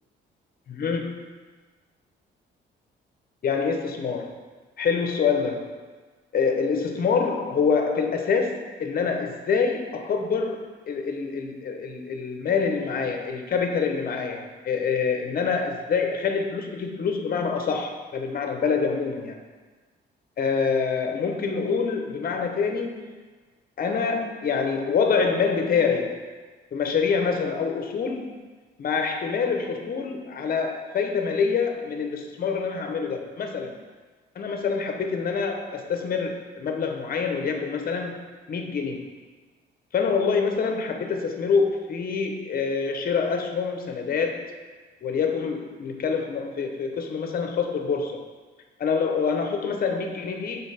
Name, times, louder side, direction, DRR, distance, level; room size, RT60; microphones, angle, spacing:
voice 1, 0.7-1.2 3.4-4.3 4.8-5.8 6.3-19.4 20.4-23.1 23.8-26.2 26.7-28.4 28.8-33.8 34.3-39.1 39.9-44.5 45.0-48.2 48.8-50.6, left 5 dB, 50° left, 4 dB, 0.8 m, -26 dB
5.6 x 4.0 x 4.2 m, 1.3 s
cardioid pair, 90°, 20 cm